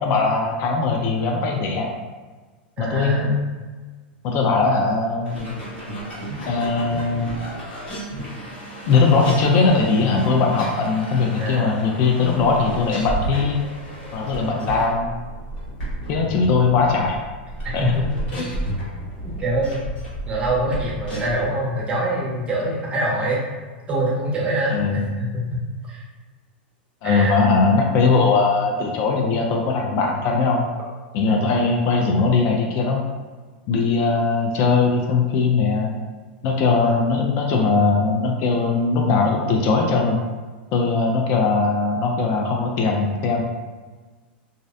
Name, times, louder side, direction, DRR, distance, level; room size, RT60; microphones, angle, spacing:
voice 1, 0.0-1.9 2.8-3.3 4.2-5.4 6.5-7.4 8.9-13.6 14.1-15.1 16.1-17.2 17.7-17.8 18.4-18.5 24.7-25.0 27.0-30.6 31.1-33.0 33.7-35.9 36.4-40.2 40.7-43.4, left 4 dB, 45° left, 1 dB, 0.4 m, -20 dB
voice 2, 2.8-3.3 11.4-11.7 14.4-14.7 16.2-16.3 17.6-18.1 19.2-19.8 20.3-23.4 23.9-25.6 25.9-26.0 27.0-27.4 31.2-31.5 36.8-37.0, right 1 dB, 20° right, -5 dB, 0.8 m, -25 dB
sound 1, 5.2-21.5, right 1 dB, 70° left, 1.3 m, -33 dB
2.4 x 2.0 x 2.5 m, 1.4 s
hypercardioid pair, 115°, 6 cm